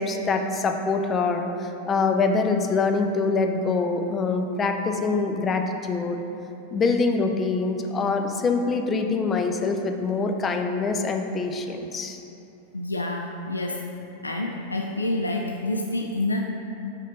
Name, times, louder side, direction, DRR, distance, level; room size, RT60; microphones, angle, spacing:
voice 1, 0.0-6.2 6.7-12.2, left 4 dB, 25° left, 5 dB, 0.5 m, -24 dB
voice 2, 12.7-13.9 14.2-16.4, left 2 dB, 80° left, 2 dB, 0.3 m, -28 dB
5.4 x 5.0 x 4.0 m, 2.8 s
figure-of-eight pair, 90°, 0 cm